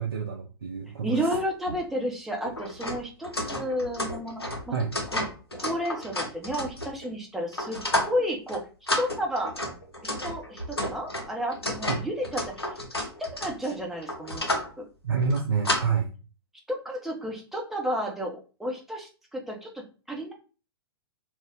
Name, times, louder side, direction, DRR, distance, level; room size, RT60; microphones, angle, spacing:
voice 1, 0.0-1.3 4.7-5.0 11.9-12.0 15.0-16.1, right 5 dB, 70° right, 1 dB, 0.4 m, -28 dB
voice 2, 1.0-4.4 4.7-4.8 5.1-5.2 5.5-8.6 9.0-9.5 10.2-12.4 13.2-14.6 16.7-20.3, equal, ahead, 0 dB, 0.6 m, -31 dB
sound 1, 1.3-1.4 1.7-1.8 2.4-7.1 7.5-8.2 8.5-8.6 8.9-14.7 15.2-15.8, left 1 dB, 85° left, 0.6 m, -32 dB
2.3 x 2.0 x 3.6 m, 0.35 s
figure-of-eight pair, 105°, 13 cm